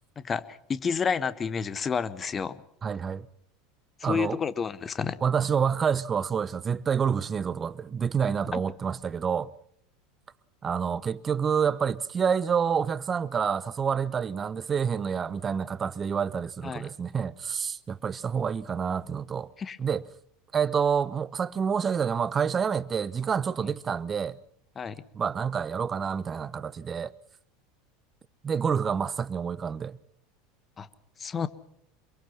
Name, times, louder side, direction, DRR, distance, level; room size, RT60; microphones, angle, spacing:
voice 1, 0.2-2.6 4.0-5.2 8.5-8.6 16.6-16.8 19.6-19.8 24.7-25.0 30.8-30.9 31.2-31.5, left 6 dB, 25° left, 1.4 m, -30 dB
voice 2, 2.8-3.3 4.0-4.4 5.2-9.5 10.6-19.5 19.8-20.0 20.5-24.4 25.1-27.1 28.4-30.0, right 7 dB, 30° right, 1.0 m, -28 dB
26.0 x 23.0 x 5.8 m
hypercardioid pair, 80°, 0 cm